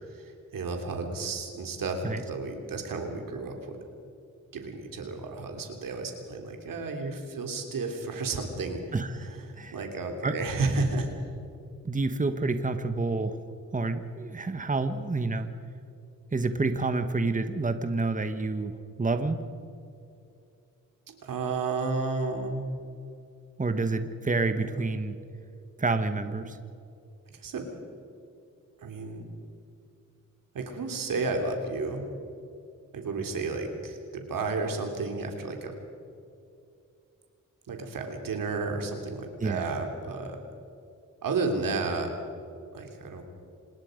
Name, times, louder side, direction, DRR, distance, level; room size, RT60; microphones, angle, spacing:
voice 1, 0.1-2.0 2.3-3.6 4.5-8.8 9.3-9.4 9.7-11.1 21.1-22.7 24.5-24.7 27.4-27.6 28.8-29.3 30.5-32.1 32.9-35.7 37.7-40.4 41.2-42.1 42.7-43.2, right 3 dB, 90° right, 4 dB, 3.3 m, -32 dB
voice 2, 8.9-9.8 10.2-10.4 11.8-13.4 13.7-15.5 16.3-19.4 23.6-25.2 25.8-26.6 39.4-39.6, right 3 dB, 25° right, 9 dB, 1.3 m, -28 dB
27.5 x 20.0 x 5.2 m, 2.6 s
cardioid pair, 90°, 32 cm